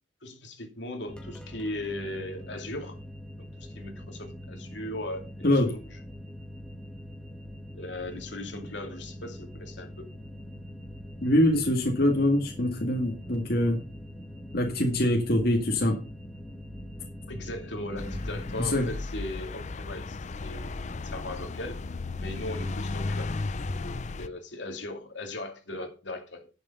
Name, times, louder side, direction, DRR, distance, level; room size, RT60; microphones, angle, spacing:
voice 1, 0.2-3.0 3.6-5.8 7.7-10.1 14.6-14.9 17.3-20.7 21.0-21.8 22.2-23.3 23.8-26.5, left 1 dB, 75° left, 2.6 m, -38 dB
sound 1, 1.1-18.5, equal, 5° left, 1.5 m, -43 dB
voice 2, 5.4-5.8 11.2-13.8 14.5-16.0 18.6-18.9, left 1 dB, 55° left, 2.1 m, -24 dB
sound 2, 18.0-24.3, left 3 dB, 40° left, 0.6 m, -34 dB
11.0 x 7.0 x 5.7 m
head